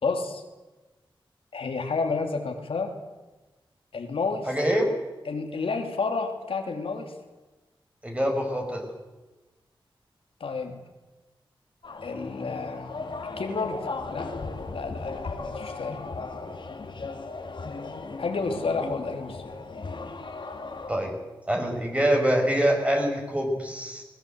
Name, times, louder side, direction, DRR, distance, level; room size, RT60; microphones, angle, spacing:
voice 1, 0.0-0.4 1.5-3.0 3.9-4.5 5.2-7.2 10.4-10.8 12.0-13.1 13.4-14.3 14.7-16.0 18.2-19.6, left 4 dB, 85° left, 4 dB, 2.9 m, -30 dB
voice 2, 4.5-4.9 8.0-8.9 20.9-21.2 21.5-24.0, equal, 15° right, 2 dB, 6.0 m, -25 dB
sound 1, 11.8-20.9, left 3 dB, 60° left, 2.6 m, -36 dB
20.5 x 20.5 x 8.1 m, 1.1 s
wide cardioid pair, 90°, 9 cm